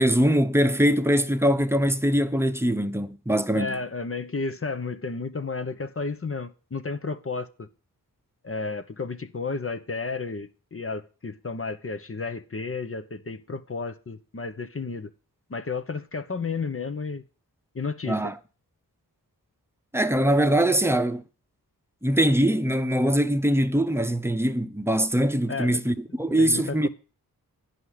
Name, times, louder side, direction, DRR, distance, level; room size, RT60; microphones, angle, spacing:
voice 1, 0.0-3.8 18.1-18.3 19.9-21.2 22.0-26.9, equal, 5° right, 1.0 m, -22 dB
voice 2, 3.5-7.7 8.4-15.1 15.5-17.2 17.7-18.3 25.5-25.8 26.4-26.9, left 4 dB, 35° left, 1.0 m, -32 dB
10.0 x 5.5 x 7.9 m
cardioid pair, 60°, 38 cm